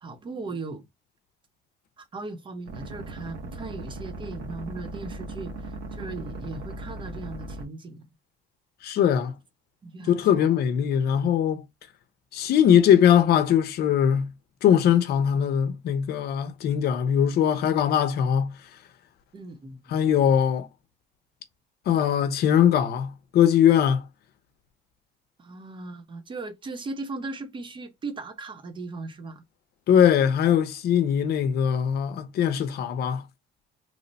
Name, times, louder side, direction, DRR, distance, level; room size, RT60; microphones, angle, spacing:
voice 1, 0.0-0.9 2.0-8.1 9.8-10.4 19.3-19.8 25.4-29.4, right 3 dB, 30° right, 0.7 m, -38 dB
sound 1, 2.7-7.6, right 2 dB, 80° right, 0.9 m, -38 dB
voice 2, 8.8-9.4 10.1-11.6 12.3-14.3 14.6-18.6 19.9-20.7 21.9-24.0 29.9-33.2, left 9 dB, 65° left, 0.7 m, -21 dB
3.1 x 2.1 x 3.9 m
cardioid pair, 120°, 18 cm